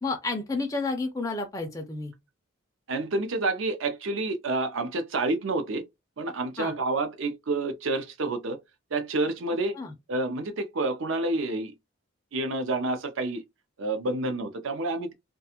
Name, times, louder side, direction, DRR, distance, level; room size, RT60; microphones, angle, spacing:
voice 1, 0.0-2.1 6.6-6.7 9.7-9.9, left 3 dB, 15° left, 0.4 m, -31 dB
voice 2, 2.9-5.8 6.2-8.6 8.9-9.8 10.1-11.7 12.3-13.4 13.8-15.1, right 2 dB, 75° right, 0.5 m, -29 dB
2.4 x 2.3 x 2.8 m
head